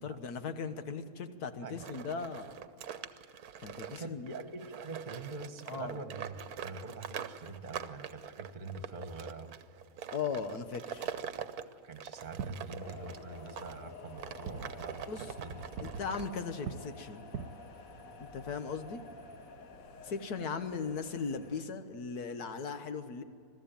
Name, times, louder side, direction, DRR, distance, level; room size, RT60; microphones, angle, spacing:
voice 1, 0.0-2.6 3.6-4.3 5.7-5.9 10.1-11.2 15.1-15.2 15.8-17.2 18.2-19.0 20.0-23.2, left 5 dB, 80° left, 9 dB, 1.7 m, -38 dB
sound 1, 1.8-13.8 14.2-16.6, right 8 dB, 75° right, 1.3 m, -44 dB
voice 2, 3.8-6.3 6.6-9.5 11.8-15.1 15.4-15.6 16.0-16.1, right 3 dB, 30° right, 8 dB, 1.4 m, -44 dB
Fireworks, 12.2-21.5, right 6 dB, 90° right, 1.4 m, -48 dB
sound 2, 12.8-21.6, left 4 dB, 65° left, 1.3 m, -51 dB
22.0 x 13.5 x 9.1 m, 2.5 s
omnidirectional pair, 1.7 m